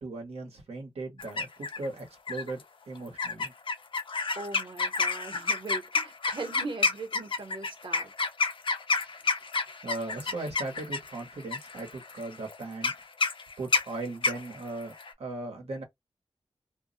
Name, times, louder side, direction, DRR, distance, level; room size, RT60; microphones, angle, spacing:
voice 1, 0.0-3.5 9.8-12.9 13.6-15.8, right 2 dB, 90° right, 0.9 m, -38 dB
sound 1, 1.2-1.9 2.3-2.6 3.2-15.1, left 4 dB, 55° left, 0.5 m, -30 dB
voice 2, 4.3-8.1, right 2 dB, 55° right, 0.9 m, -39 dB
2.2 x 2.0 x 3.7 m
wide cardioid pair, 70°, 10 cm